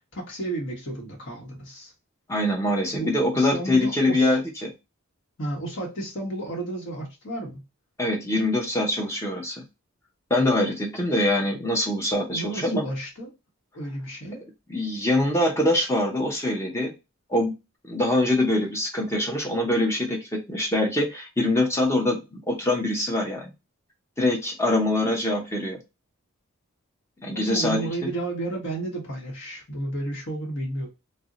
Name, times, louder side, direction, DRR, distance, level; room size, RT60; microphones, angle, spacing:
voice 1, 0.1-1.9 2.9-4.4 5.4-7.6 12.3-13.3 13.7-14.4 27.3-30.9, right 2 dB, 60° left, -1 dB, 1.0 m, -32 dB
voice 2, 2.3-4.7 8.0-9.6 10.3-12.8 14.7-16.9 17.3-17.5 17.8-23.5 24.2-25.8 27.2-27.8, left 1 dB, 15° left, 0 dB, 0.6 m, -24 dB
2.5 x 2.1 x 3.7 m, 0.25 s
head